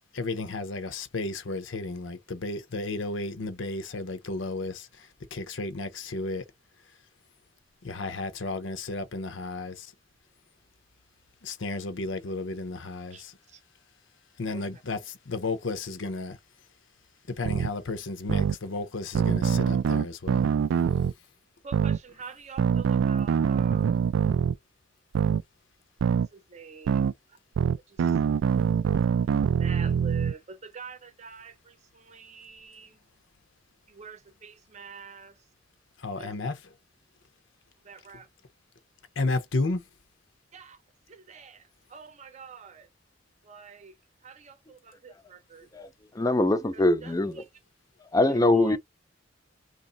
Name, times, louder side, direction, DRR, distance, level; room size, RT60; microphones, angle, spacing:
voice 1, 0.1-6.4 7.8-9.9 11.4-13.4 14.4-16.4 17.3-20.5 36.0-36.7 39.2-39.8, left 3 dB, 80° left, 0.8 m, -33 dB
voice 2, 13.1-13.6 14.5-14.6 21.6-24.1 26.3-27.4 27.9-28.1 29.5-33.0 33.9-35.4 36.2-36.5 37.8-38.3 40.5-40.8 41.1-42.9 43.4-43.9 44.2-45.7 46.7-47.5 48.5-48.8, right 5 dB, 35° right, 0.7 m, -46 dB
sound 1, 17.4-17.7 18.3-18.5 19.1-21.1 21.7-22.0 22.6-24.5 25.1-25.4 26.0-26.3 26.9-27.1 27.5-30.3, right 7 dB, 80° right, 0.3 m, -24 dB
voice 3, 46.1-47.4 48.1-48.8, left 2 dB, 20° left, 0.5 m, -23 dB
3.0 x 2.7 x 3.9 m
head